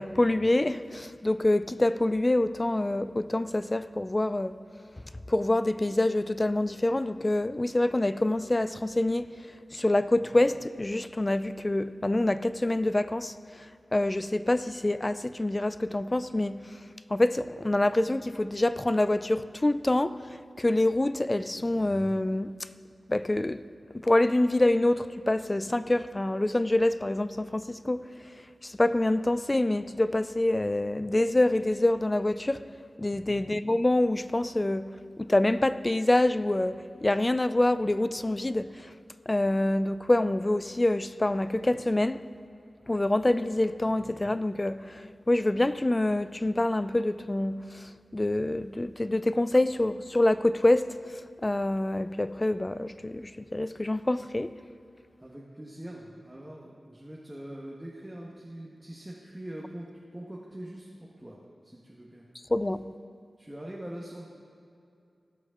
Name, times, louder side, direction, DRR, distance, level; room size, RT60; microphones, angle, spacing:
voice 1, 0.0-4.6 5.3-9.3 9.7-16.6 17.1-22.7 23.1-23.6 24.0-28.0 28.6-32.6 33.0-34.9 35.2-38.9 39.3-42.2 42.9-54.5 62.5-62.8, left 1 dB, 30° left, 0.4 m, -26 dB
voice 2, 55.2-62.2 63.4-64.2, right 1 dB, 15° right, 1.3 m, -43 dB
17.0 x 6.1 x 3.7 m
cardioid pair, 50°, 0 cm